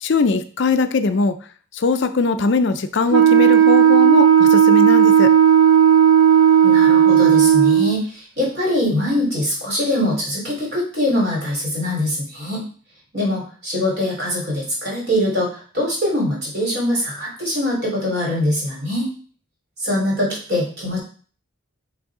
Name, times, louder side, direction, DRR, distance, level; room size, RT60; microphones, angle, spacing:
voice 1, 0.0-1.3 1.7-5.3, left 4 dB, 55° left, 10 dB, 0.5 m, -20 dB
Wind instrument woodwind instrument, 3.1-8.0, right 9 dB, 70° right, 0.6 m, -13 dB
voice 2, 6.6-12.6 13.1-19.1 19.8-21.0, left 1 dB, 50° right, -4 dB, 3.3 m, -23 dB
6.3 x 3.4 x 4.8 m, 0.42 s
head